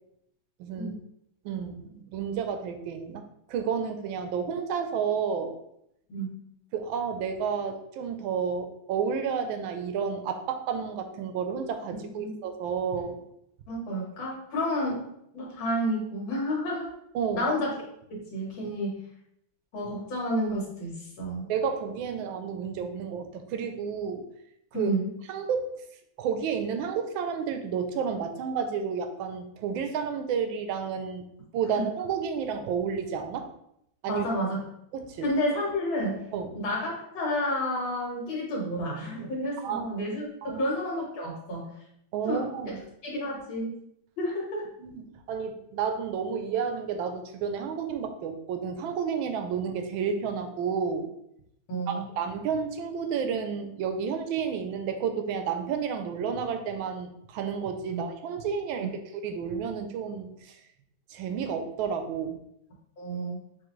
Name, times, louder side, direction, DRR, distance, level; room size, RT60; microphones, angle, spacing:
voice 1, 0.6-0.9 1.4-3.2 3.5-5.6 6.7-13.2 17.1-17.4 21.5-24.2 24.7-24.9 25.3-25.7 26.2-31.2 31.5-33.5 34.0-34.3 34.9-35.3 36.3-36.5 39.6-39.8 40.4-40.6 42.1-42.8 44.8-51.1 51.9-60.5 61.1-62.4, right 6 dB, 85° right, 7 dB, 1.4 m, -31 dB
voice 2, 13.7-15.0 15.3-16.9 17.3-17.7 18.1-19.0 19.7-21.5 24.7-25.1 31.8-31.9 34.1-34.7 35.2-36.2 36.6-40.3 40.5-41.7 42.2-42.4 43.0-43.7 44.2-44.6 51.7-52.0 57.9-58.0 63.0-63.4, equal, 80° left, -3 dB, 2.2 m, -30 dB
6.0 x 2.5 x 3.1 m, 0.76 s
omnidirectional pair, 2.1 m